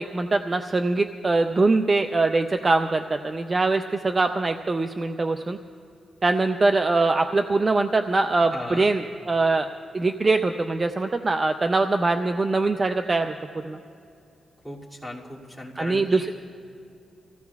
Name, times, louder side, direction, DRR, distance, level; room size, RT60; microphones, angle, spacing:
voice 1, 0.0-5.6 6.2-13.3 13.6-13.8 15.8-16.3, right 3 dB, 30° right, 7 dB, 0.4 m, -23 dB
voice 2, 8.5-8.9 14.6-16.3, left 1 dB, ahead, -6 dB, 2.4 m, -37 dB
25.5 x 15.5 x 2.3 m, 2.6 s
cardioid pair, 105°, 0 cm